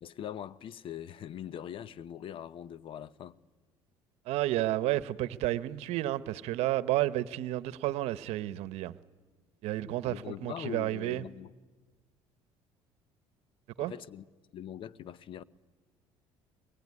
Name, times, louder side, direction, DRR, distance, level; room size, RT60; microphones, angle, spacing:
voice 1, 0.0-3.4 10.1-11.5 13.8-14.2 14.5-15.4, left 10 dB, 55° left, 0.8 m, -42 dB
voice 2, 4.3-8.9 9.6-11.2 13.8-13.9, right 15 dB, 75° right, 0.9 m, -31 dB
22.5 x 21.5 x 9.7 m
supercardioid pair, 95°, 11 cm